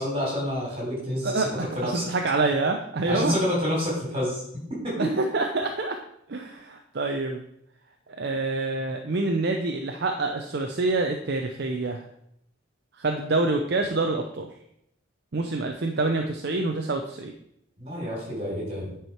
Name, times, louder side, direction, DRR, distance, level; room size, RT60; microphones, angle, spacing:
voice 1, 0.0-1.4 1.8-2.1 3.1-4.4 4.8-5.1 17.8-18.9, equal, 30° right, -4 dB, 3.6 m, -28 dB
voice 2, 1.2-3.4 5.0-6.0 6.3-7.4 8.2-12.1 13.0-14.5 15.3-17.3, right 3 dB, 50° right, 4 dB, 0.6 m, -26 dB
9.5 x 4.7 x 4.6 m, 0.75 s
head